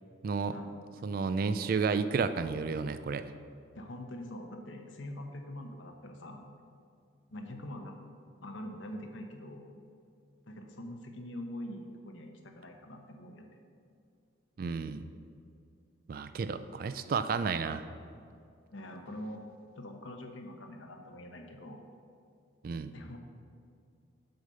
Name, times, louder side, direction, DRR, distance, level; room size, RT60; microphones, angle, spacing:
voice 1, 0.5-0.8 3.7-6.4 7.3-8.0 8.4-9.7 10.5-13.5 18.7-19.4 19.8-21.8 22.9-23.2, left 1 dB, 70° left, 4 dB, 0.9 m, -44 dB
voice 2, 1.0-3.3 14.6-15.1 16.1-17.8 22.6-22.9, right 5 dB, 45° right, 11 dB, 0.3 m, -31 dB
8.0 x 5.1 x 5.5 m, 2.4 s
head